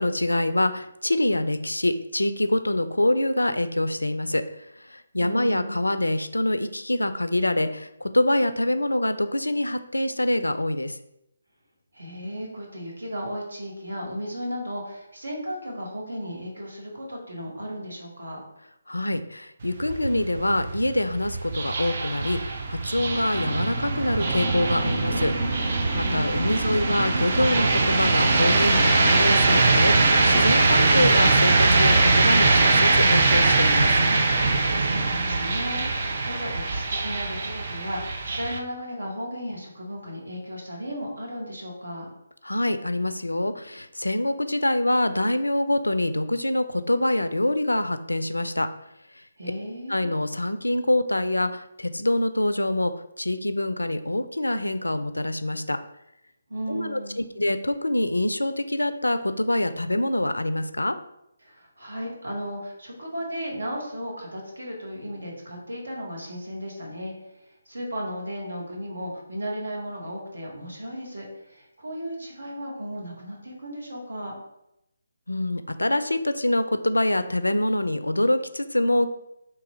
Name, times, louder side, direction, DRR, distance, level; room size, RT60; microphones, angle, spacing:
voice 1, 0.0-4.4 4.9-11.0 18.9-22.4 22.7-25.3 25.7-33.9 42.4-48.7 49.9-52.9 53.2-55.8 56.7-61.0 75.3-79.1, left 1 dB, 80° left, 11 dB, 0.3 m, -25 dB
voice 2, 5.2-5.9 11.9-18.4 26.0-26.6 34.8-42.1 49.4-50.1 56.5-57.3 61.4-74.3, equal, 70° right, -2 dB, 1.3 m, -35 dB
sound 1, 19.6-38.6, right 3 dB, 40° right, 0.5 m, -22 dB
3.7 x 2.9 x 3.5 m, 0.82 s
figure-of-eight pair, 145°, 0 cm